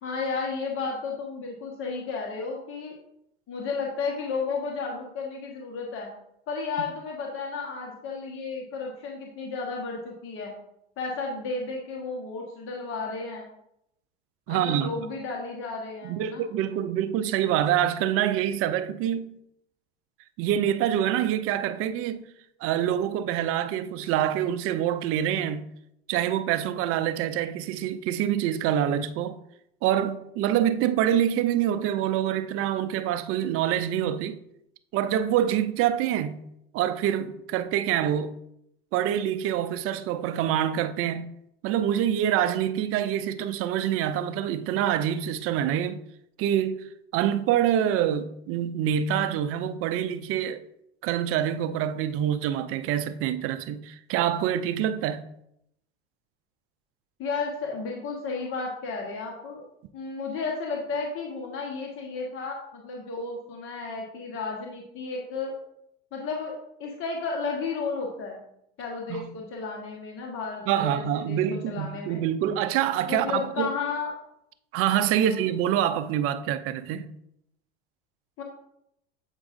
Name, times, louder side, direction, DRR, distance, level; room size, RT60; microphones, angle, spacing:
voice 1, 0.0-3.0 3.5-6.1 6.5-10.5 11.0-13.4 14.5-16.4 57.2-59.6 59.9-65.5 66.1-68.4 68.8-72.2 73.1-74.3 75.2-75.5 78.4-78.5, left 4 dB, 40° left, 1.3 m, -33 dB
voice 2, 14.5-14.9 16.0-19.3 20.4-22.2 22.6-25.7 26.1-29.4 29.8-34.4 34.9-36.4 36.7-38.3 38.9-41.3 41.6-46.0 46.4-46.8 47.1-50.6 51.0-55.2 69.1-69.2 70.7-73.7 74.7-77.1, right 10 dB, 45° right, 0.5 m, -26 dB
8.1 x 4.7 x 2.6 m
hypercardioid pair, 95°, 32 cm